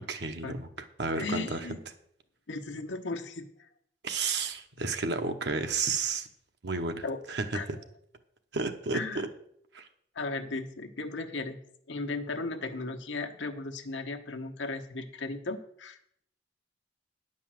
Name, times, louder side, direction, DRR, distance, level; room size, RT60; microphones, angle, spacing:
voice 1, 0.1-0.7 1.0-1.7 4.0-6.3 6.6-7.8 8.5-9.3 9.7-9.9, right 4 dB, 65° right, 7 dB, 1.0 m, -32 dB
voice 2, 1.1-1.8 2.5-3.7 7.0-7.2 7.5-7.7 8.9-9.2 10.1-11.6 11.9-16.0, left 3 dB, 90° left, 5 dB, 1.1 m, -36 dB
10.0 x 5.4 x 7.5 m, 0.71 s
head